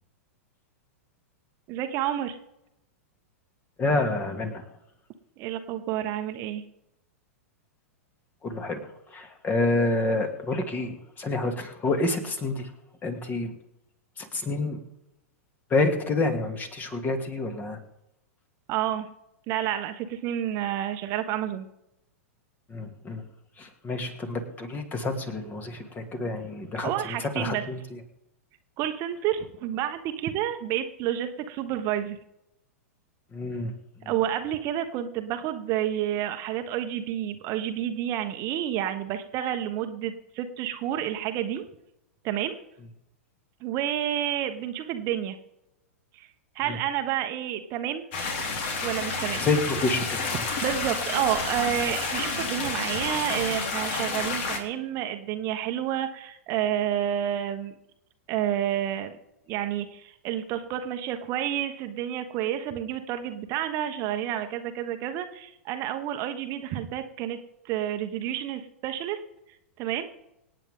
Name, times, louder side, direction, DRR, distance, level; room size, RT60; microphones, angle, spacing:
voice 1, 1.7-2.4 5.4-6.6 18.7-19.1 19.5-21.7 26.8-27.6 28.8-32.2 34.0-41.6 42.2-42.5 43.6-45.4 46.1-46.3 46.5-48.1 48.8-49.5 50.6-57.7 58.3-59.2 59.5-67.4 67.6-69.2 69.8-70.1, right 11 dB, 40° right, 7 dB, 1.2 m, -29 dB
voice 2, 3.8-4.6 8.4-12.7 13.0-13.5 14.2-14.8 15.7-17.8 22.7-23.2 23.6-28.0 33.3-34.1 46.7-46.8 49.4-50.5, left 2 dB, 20° left, 7 dB, 2.4 m, -28 dB
sound 1, 48.1-54.6, left 4 dB, 50° left, 3.3 m, -30 dB
26.0 x 9.1 x 3.7 m, 0.86 s
figure-of-eight pair, 100°, 8 cm